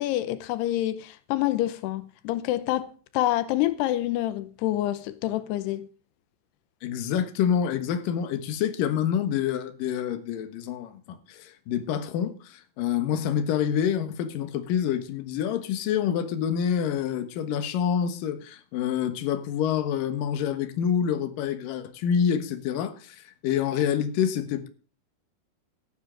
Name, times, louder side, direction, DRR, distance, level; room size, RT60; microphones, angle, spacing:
voice 1, 0.0-5.9, left 14 dB, 90° left, 2.9 m, -27 dB
voice 2, 6.8-24.7, left 8 dB, 65° left, 2.7 m, -27 dB
16.0 x 10.0 x 3.9 m
omnidirectional pair, 4.6 m